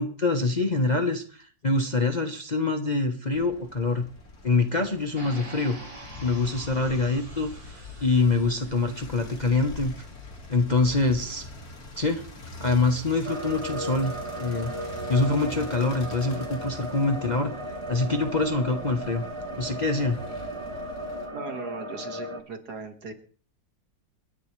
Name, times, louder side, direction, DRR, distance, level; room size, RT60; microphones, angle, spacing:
voice 1, 0.0-4.1 4.4-5.8 6.2-7.5 8.0-10.1 10.5-11.4 12.0-12.2 12.6-14.7 15.1-17.5 17.9-19.2 19.6-20.2, left 3 dB, 30° left, 5 dB, 0.9 m, -25 dB
sound 1, 3.3-21.3, left 2 dB, 55° left, 2.8 m, -43 dB
sound 2, 5.2-10.2, right 2 dB, 80° right, 5.9 m, -46 dB
sound 3, 13.2-22.4, right 1 dB, 20° right, 1.3 m, -35 dB
voice 2, 21.3-23.1, right 4 dB, 60° right, 6 dB, 2.3 m, -38 dB
28.0 x 10.5 x 3.2 m, 0.43 s
omnidirectional pair, 1.9 m